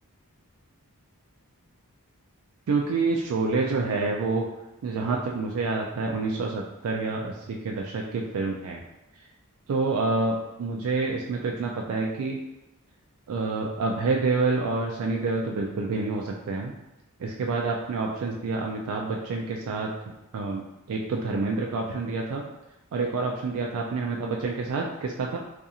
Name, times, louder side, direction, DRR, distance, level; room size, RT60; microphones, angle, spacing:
voice 1, 2.7-4.5 4.8-8.8 9.7-12.4 13.3-16.7 17.2-19.9 20.3-22.4 22.9-25.4, right 3 dB, 70° right, -1 dB, 0.3 m, -28 dB
2.5 x 2.3 x 2.7 m, 0.93 s
head